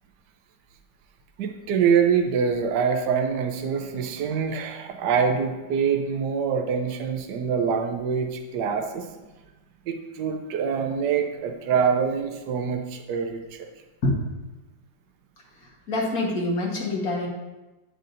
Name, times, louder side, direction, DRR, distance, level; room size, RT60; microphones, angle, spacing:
voice 1, 1.4-9.1 9.9-13.7, right 6 dB, 65° right, 4 dB, 1.3 m, -25 dB
voice 2, 15.6-17.3, left 2 dB, 50° left, -2 dB, 1.9 m, -26 dB
9.0 x 8.3 x 2.6 m, 1.1 s
omnidirectional pair, 2.1 m